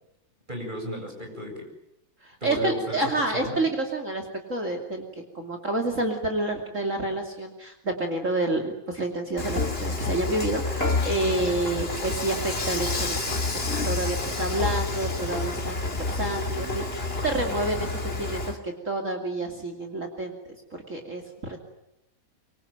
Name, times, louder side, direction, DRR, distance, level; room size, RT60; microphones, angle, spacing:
voice 1, 0.5-1.7 2.4-3.7, equal, 20° right, 2 dB, 8.0 m, -35 dB
voice 2, 2.2-20.4 20.9-21.6, right 2 dB, 40° right, 4 dB, 3.1 m, -29 dB
Dishes pots and pans / Frying (food), 9.4-18.6, left 3 dB, 30° left, 2.9 m, -29 dB
25.0 x 24.5 x 8.9 m, 0.85 s
omnidirectional pair, 2.1 m